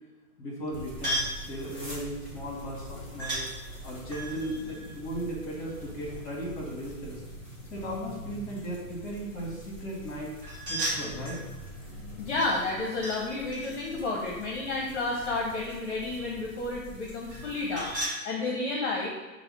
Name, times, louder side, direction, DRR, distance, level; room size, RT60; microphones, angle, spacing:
voice 1, 0.4-1.2 1.5-3.4 3.8-7.2 7.7-10.3 10.7-11.4, right 1 dB, 25° left, -2 dB, 1.4 m, -36 dB
sound 1, 0.7-18.1, left 1 dB, 5° left, 0.6 m, -45 dB
sound 2, 1.0-1.4 3.2-3.5 4.1-5.9 10.4-11.5 12.4-13.2 13.5-15.4 17.3-18.2, right 1 dB, 30° right, 1.0 m, -35 dB
voice 2, 12.2-19.1, left 2 dB, 50° left, -2 dB, 0.7 m, -31 dB
5.7 x 2.1 x 3.6 m, 1.3 s
hypercardioid pair, 145°, 46 cm